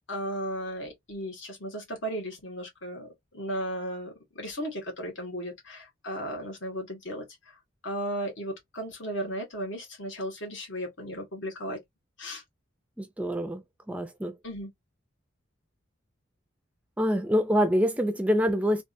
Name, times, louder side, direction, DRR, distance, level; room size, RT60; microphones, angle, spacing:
voice 1, 0.1-3.1 3.3-7.2 7.8-11.8 12.2-12.4 14.4-14.7, equal, 75° left, 1.7 m, -35 dB
voice 2, 13.0-13.6 13.9-14.3 17.0-18.8, equal, 5° right, 0.3 m, -25 dB
3.3 x 2.7 x 2.6 m
head